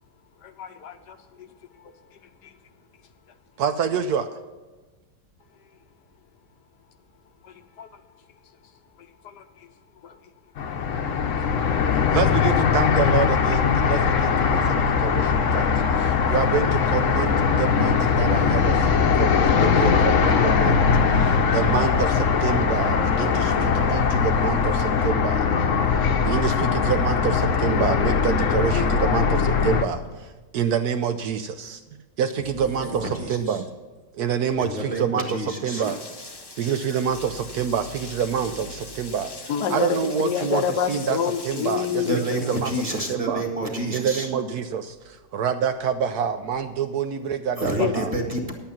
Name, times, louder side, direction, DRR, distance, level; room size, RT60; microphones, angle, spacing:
voice 1, 0.4-1.5 1.8-1.9 7.8-7.9 9.2-9.4 10.0-10.1 39.5-42.4 47.8-47.9, left 8 dB, 75° left, 8 dB, 1.3 m, -27 dB
voice 2, 3.6-4.4 12.1-15.7 16.0-25.5 26.2-31.8 32.2-33.7 34.2-36.0 36.6-41.2 41.4-42.1 42.4-42.7 43.1-43.4 43.9-48.1, right 7 dB, 70° right, 9 dB, 1.0 m, -27 dB
sound 1, 10.6-29.8, left 6 dB, 55° left, 1.1 m, -21 dB
voice 3, 32.6-33.6 34.6-36.0 42.0-44.3 47.6-48.5, right 1 dB, 20° right, 2 dB, 1.7 m, -29 dB
Rain, 35.8-43.2, left 2 dB, 25° left, 0.5 m, -42 dB
10.5 x 8.9 x 5.8 m, 1.3 s
omnidirectional pair, 1.9 m